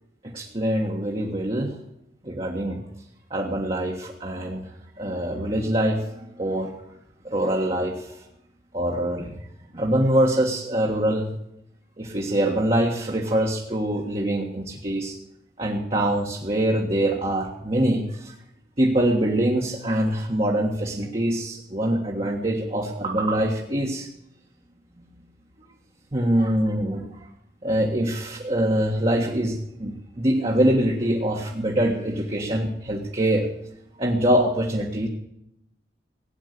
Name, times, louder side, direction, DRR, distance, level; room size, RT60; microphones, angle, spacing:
voice 1, 0.3-1.7 2.2-2.8 3.3-4.6 5.0-6.7 7.2-8.1 8.7-9.3 9.7-11.3 12.0-15.2 15.6-18.3 18.8-24.1 26.1-27.1 27.6-33.5 34.0-35.1, right 1 dB, 35° right, -1 dB, 1.6 m, -24 dB
16.5 x 9.3 x 6.7 m, 0.82 s
head